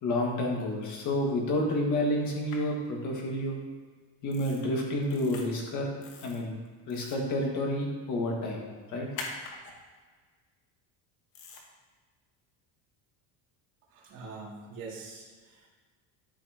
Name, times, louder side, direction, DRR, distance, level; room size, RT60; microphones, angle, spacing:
voice 1, 0.0-3.6 4.2-5.9 6.2-6.5 6.9-9.1, left 1 dB, 40° left, -1 dB, 1.9 m, -30 dB
sound 1, 2.5-2.6 4.3-4.6 5.0-5.4 6.0-6.4 6.9-7.3 9.1-9.5 11.3-11.6, left 4 dB, 90° left, 1.7 m, -42 dB
voice 2, 13.9-15.7, right 4 dB, 50° right, -4 dB, 2.5 m, -44 dB
13.0 x 5.7 x 2.9 m, 1.5 s
cardioid pair, 170°, 45 cm